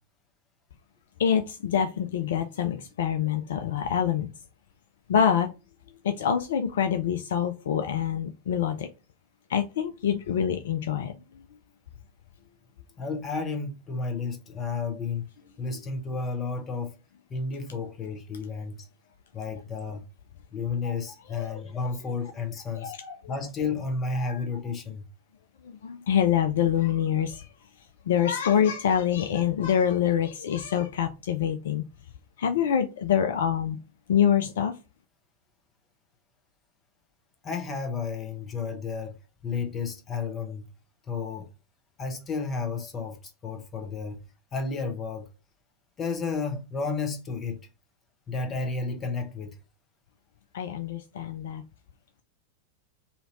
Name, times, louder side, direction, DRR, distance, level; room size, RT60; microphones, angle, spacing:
voice 1, 1.2-4.3 5.1-5.5 6.0-8.9 9.5-11.1 20.8-21.0 21.3-21.6 22.8-23.1 24.1-24.4 25.6-27.5 28.1-31.9 32.4-33.8 34.1-34.8 50.5-51.6, left 8 dB, 60° left, 0.3 m, -26 dB
voice 2, 13.0-15.2 15.6-16.9 17.3-18.9 19.3-20.0 20.5-22.9 23.3-25.1 37.4-39.2 39.4-40.7 41.1-41.5 42.0-44.2 44.5-45.3 46.0-47.6 48.3-49.6, left 4 dB, 25° left, 0.9 m, -32 dB
2.8 x 2.7 x 4.1 m
figure-of-eight pair, 90°, 0 cm